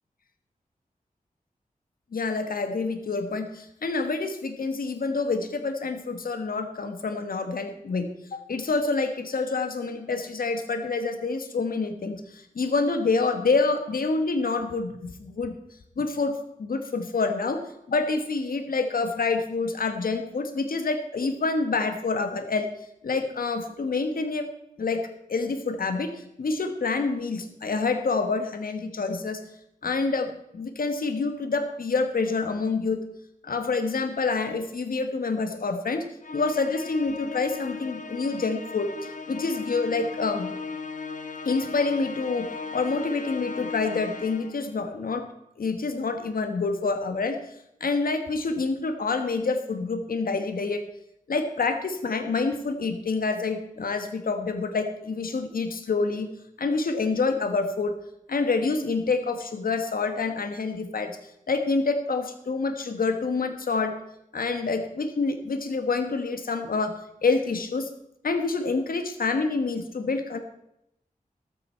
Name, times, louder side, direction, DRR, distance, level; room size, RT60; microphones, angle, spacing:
voice 1, 2.1-15.6 16.0-22.7 23.0-24.5 24.8-29.4 29.8-33.0 33.4-36.1 36.3-40.5 41.4-45.2 45.6-47.4 47.8-50.8 51.3-56.3 56.6-57.9 58.3-61.2 61.5-63.9 64.3-67.9 68.2-70.4, left 4 dB, 90° left, 7 dB, 1.3 m, -27 dB
Musical instrument, 36.2-44.7, left 4 dB, 65° left, 1.1 m, -37 dB
13.5 x 13.0 x 4.4 m, 0.80 s
wide cardioid pair, 70°, 14 cm